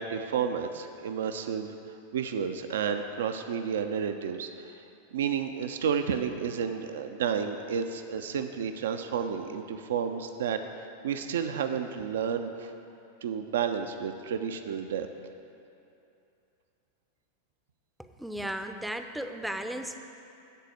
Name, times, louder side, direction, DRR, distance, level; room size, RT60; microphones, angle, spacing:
voice 1, 0.0-1.7 2.1-4.8 5.1-12.7 13.2-15.1, right 7 dB, 60° right, 7 dB, 0.5 m, -31 dB
voice 2, 18.2-20.0, right 1 dB, ahead, 7 dB, 0.5 m, -35 dB
12.0 x 4.1 x 7.7 m, 2.7 s
figure-of-eight pair, 90°, 0 cm